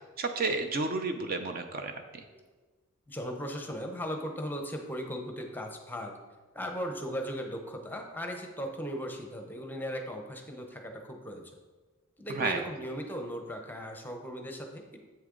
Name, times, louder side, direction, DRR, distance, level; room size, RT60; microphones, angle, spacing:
voice 1, 0.2-2.2 12.3-12.6, right 3 dB, 45° right, 6 dB, 0.6 m, -31 dB
voice 2, 3.1-6.1 6.5-11.6 12.2-15.0, equal, 10° left, 3 dB, 0.8 m, -37 dB
8.1 x 6.5 x 3.8 m, 1.3 s
head